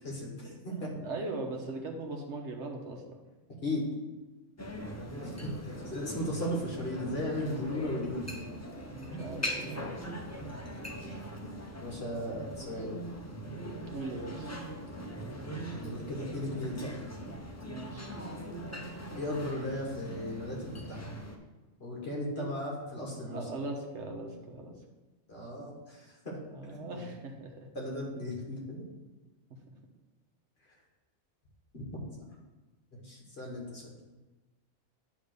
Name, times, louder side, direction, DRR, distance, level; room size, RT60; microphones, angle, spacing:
voice 1, 0.0-1.1 3.6-3.9 5.2-8.3 11.8-13.0 15.8-17.2 19.1-21.2 21.8-23.6 25.3-27.0 27.7-28.8 30.7-30.8 31.7-31.8 32.1-32.2 32.9-34.0, left 1 dB, 45° left, -2 dB, 1.9 m, -36 dB
voice 2, 0.8-3.2 8.9-9.9 13.8-14.5 17.6-18.1 22.2-22.5 23.2-24.7 26.5-27.7, right 2 dB, 55° right, 2 dB, 1.3 m, -40 dB
sound 1, 4.6-21.4, equal, 20° left, 0.4 m, -41 dB
8.9 x 3.2 x 6.6 m, 1.2 s
omnidirectional pair, 1.4 m